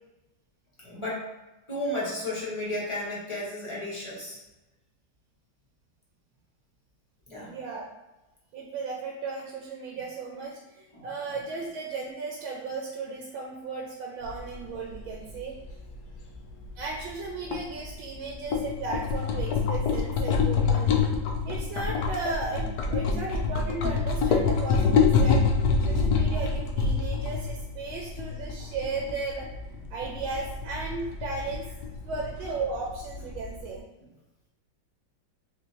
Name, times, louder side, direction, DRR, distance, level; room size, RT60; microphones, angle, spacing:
voice 1, 0.8-1.2 1.7-4.4 7.3-7.5 10.9-11.1 25.9-26.0 27.1-27.2 28.6-28.7 30.0-30.1, left 1 dB, 20° left, -6 dB, 0.8 m, -33 dB
voice 2, 7.4-7.9 8.5-15.6 16.8-21.1 21.4-25.4 25.8-29.5 29.9-31.7 32.0-33.8, right 4 dB, 80° right, -1 dB, 1.4 m, -35 dB
sound 1, 14.2-33.7, left 5 dB, 85° left, 0.8 m, -27 dB
3.8 x 3.6 x 2.8 m, 1.0 s
omnidirectional pair, 2.2 m